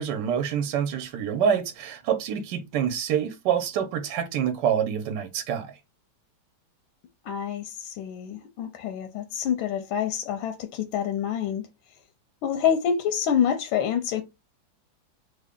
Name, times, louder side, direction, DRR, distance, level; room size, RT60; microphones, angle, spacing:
voice 1, 0.0-5.8, right 8 dB, 70° right, 1.2 m, -26 dB
voice 2, 7.2-11.7 12.4-14.2, left 8 dB, 85° left, 1.4 m, -27 dB
3.5 x 2.2 x 3.6 m
omnidirectional pair, 2.2 m